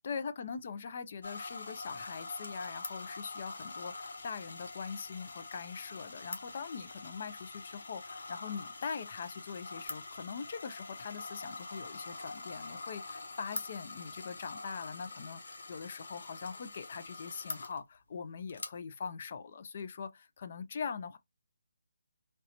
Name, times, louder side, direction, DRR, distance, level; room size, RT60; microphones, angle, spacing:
voice 1, 0.0-21.2, left 6 dB, 35° left, 0.4 m, -42 dB
sound 1, 1.2-17.8 18.5-18.7, left 3 dB, 65° left, 0.9 m, -45 dB
3.1 x 2.6 x 2.8 m
hypercardioid pair, 170°, 0 cm